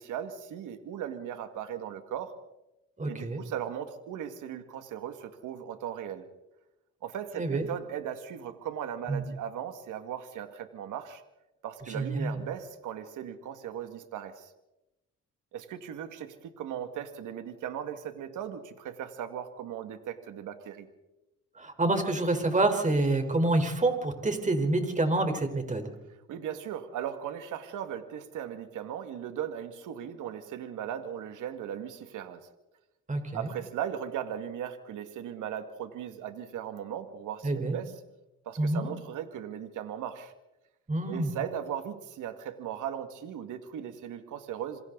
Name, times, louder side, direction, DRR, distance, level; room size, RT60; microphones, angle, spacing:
voice 1, 0.0-2.3 3.1-6.3 7.0-11.2 11.6-14.5 15.5-20.9 26.1-32.5 33.3-38.0 38.5-40.3 41.1-44.8, right 9 dB, 85° right, 8 dB, 2.3 m, -38 dB
voice 2, 3.0-3.4 7.3-7.7 9.1-9.2 11.9-12.4 21.6-25.9 33.1-33.5 37.4-37.8 38.6-38.9 40.9-41.3, right 2 dB, 25° right, 5 dB, 4.5 m, -27 dB
27.5 x 24.5 x 4.1 m, 0.96 s
cardioid pair, 90°, 30 cm